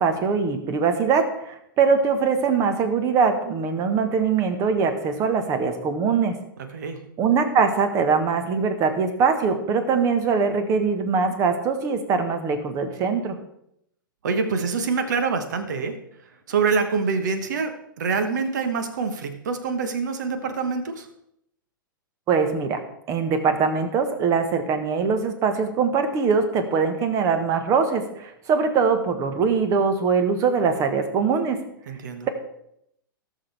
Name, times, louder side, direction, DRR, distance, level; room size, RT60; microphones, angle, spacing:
voice 1, 0.0-6.3 7.2-13.4 22.3-22.8 23.1-31.6, right 5 dB, 25° right, 8 dB, 1.4 m, -22 dB
voice 2, 14.2-15.9 16.5-21.1 31.9-32.3, right 5 dB, 55° right, 7 dB, 1.4 m, -25 dB
18.0 x 6.5 x 3.5 m, 0.76 s
figure-of-eight pair, 105°, 12 cm